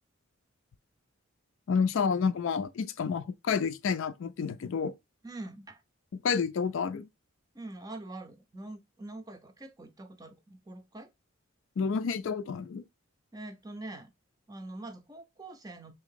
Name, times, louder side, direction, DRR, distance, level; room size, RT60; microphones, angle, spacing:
voice 1, 1.7-4.9 6.2-7.1 11.8-12.8, left 6 dB, 65° left, 0.3 m, -29 dB
voice 2, 5.2-5.8 7.5-11.1 13.3-14.1 14.5-15.9, right 2 dB, 15° right, 0.5 m, -44 dB
3.4 x 2.7 x 3.7 m
head